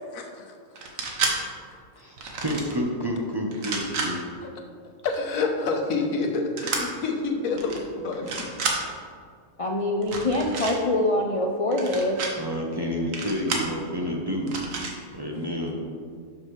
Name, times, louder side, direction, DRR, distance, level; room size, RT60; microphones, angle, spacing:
voice 1, 0.1-0.6 1.4-1.8 4.4-4.5 5.0-8.8, left 3 dB, 75° left, 3 dB, 1.4 m, -28 dB
sound 1, 0.8-1.3 2.2-2.7 3.5-4.1 6.6-6.8 7.6-7.8 8.1-8.8 10.0-10.7 11.7-12.3 13.1-13.7 14.5-14.9, right 4 dB, 70° right, 1.5 m, -30 dB
voice 2, 2.0-4.2 12.4-14.5 15.1-15.8, equal, 20° right, -1 dB, 0.8 m, -29 dB
voice 3, 9.6-12.2, left 1 dB, 45° left, 1 dB, 0.4 m, -24 dB
12.0 x 6.2 x 3.2 m, 2.1 s
omnidirectional pair, 1.5 m